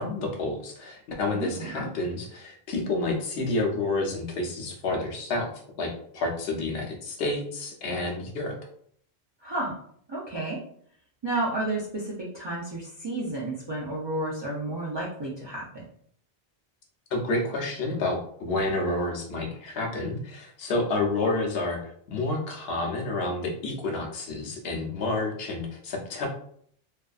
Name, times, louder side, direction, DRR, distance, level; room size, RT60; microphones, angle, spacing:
voice 1, 0.0-5.5 5.8-8.6 17.1-26.3, left 2 dB, 75° left, 0 dB, 0.8 m, -29 dB
voice 2, 1.2-1.8 9.4-9.8 10.1-10.6 11.2-15.8, right 2 dB, 40° right, -5 dB, 0.4 m, -31 dB
2.6 x 2.3 x 2.3 m, 0.62 s
omnidirectional pair, 1.1 m